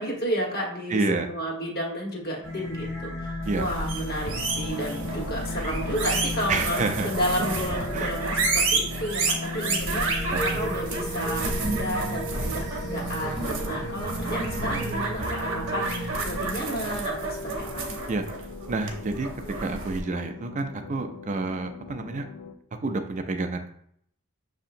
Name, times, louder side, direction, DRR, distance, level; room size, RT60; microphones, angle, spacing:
voice 1, 0.0-17.8, equal, 45° left, -1 dB, 1.3 m, -32 dB
voice 2, 0.9-1.3 3.5-3.6 6.5-7.1 7.9-8.1 10.3-10.6 18.1-18.2 18.7-19.3 19.6-22.2 22.8-23.7, right 3 dB, 35° right, 7 dB, 0.4 m, -28 dB
sound 1, 2.4-16.1, left 1 dB, 15° left, 0.9 m, -35 dB
sound 2, 3.5-20.0, right 3 dB, 60° right, 0.8 m, -30 dB
sound 3, 4.3-22.5, left 2 dB, 60° left, 0.5 m, -41 dB
6.6 x 2.8 x 2.5 m, 0.68 s
head